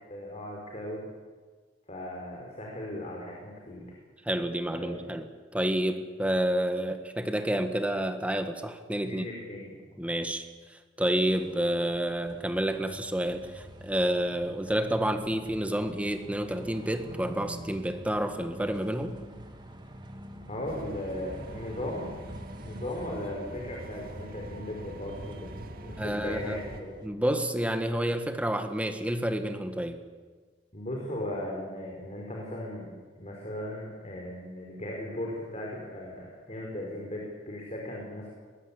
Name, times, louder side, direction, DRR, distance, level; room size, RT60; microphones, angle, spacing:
voice 1, 0.1-1.1 1.9-3.8 4.8-5.0 9.0-9.7 20.5-22.1 22.6-25.5 25.8-27.0 30.7-32.9 33.1-38.3, left 1 dB, 35° left, -1 dB, 4.5 m, -37 dB
voice 2, 4.2-9.3 10.0-19.2 26.0-26.6 27.0-30.0, right 1 dB, 10° right, 7 dB, 1.5 m, -29 dB
sound 1, 11.4-27.1, right 1 dB, 25° right, 2.4 m, -47 dB
sound 2, 20.7-26.8, right 1 dB, 55° right, 2.3 m, -43 dB
22.5 x 19.5 x 8.5 m, 1.5 s
head